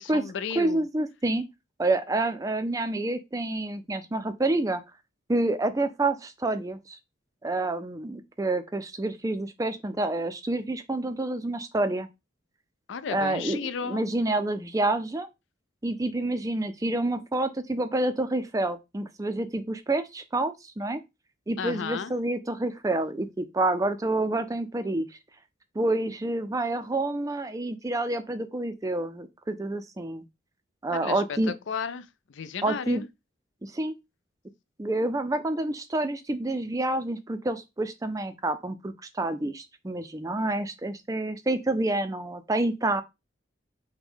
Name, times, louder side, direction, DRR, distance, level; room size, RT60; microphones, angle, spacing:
voice 1, 0.0-0.9 12.9-14.1 21.6-22.1 30.9-33.1, left 6 dB, 70° left, 0.4 m, -34 dB
voice 2, 0.6-1.4 1.8-4.8 5.3-7.0 7.4-12.1 13.1-15.3 15.8-21.0 21.5-25.1 25.8-30.2 30.8-31.5 32.6-33.0 33.6-34.0 34.8-43.0, right 2 dB, 15° right, 0.4 m, -28 dB
5.9 x 2.2 x 3.6 m
head